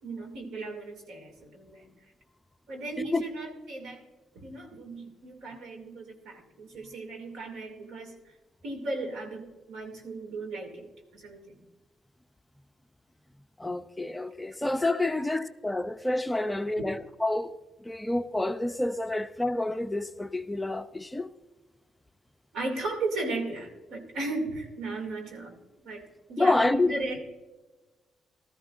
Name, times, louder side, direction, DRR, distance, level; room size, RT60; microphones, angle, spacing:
voice 1, 0.0-1.9 2.7-4.0 4.3-8.3 8.6-10.9 11.1-11.6 16.7-16.8 22.5-25.5 25.8-27.2, right 2 dB, 80° right, 2.4 m, -36 dB
voice 2, 13.6-17.6 17.8-21.3 26.4-26.9, left 2 dB, 10° left, 0.5 m, -28 dB
17.0 x 13.5 x 2.5 m
cardioid pair, 90°, 0 cm